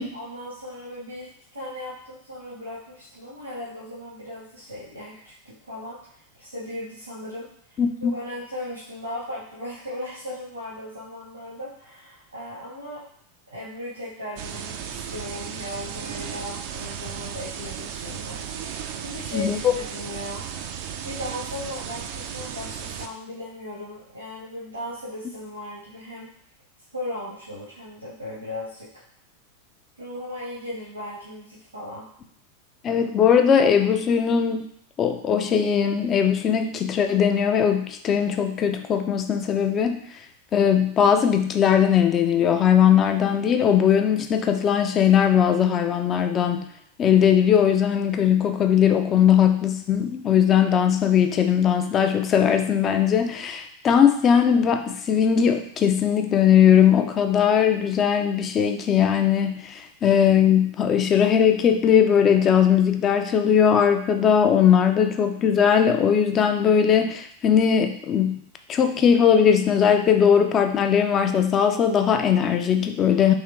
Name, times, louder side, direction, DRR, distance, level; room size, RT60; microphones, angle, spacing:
voice 1, 0.1-7.8 8.1-13.0 13.5-20.4 21.0-26.3 26.9-29.0 30.0-32.0, left 1 dB, 80° right, -8 dB, 1.0 m, -37 dB
voice 2, 7.8-8.1 19.3-19.7 32.8-34.7 35.0-40.0 40.5-46.6 47.0-73.3, left 8 dB, 30° left, 6 dB, 0.4 m, -19 dB
sound 1, 14.4-23.1, right 8 dB, 45° right, 0.3 m, -35 dB
3.6 x 2.9 x 3.2 m, 0.67 s
figure-of-eight pair, 90°, 0 cm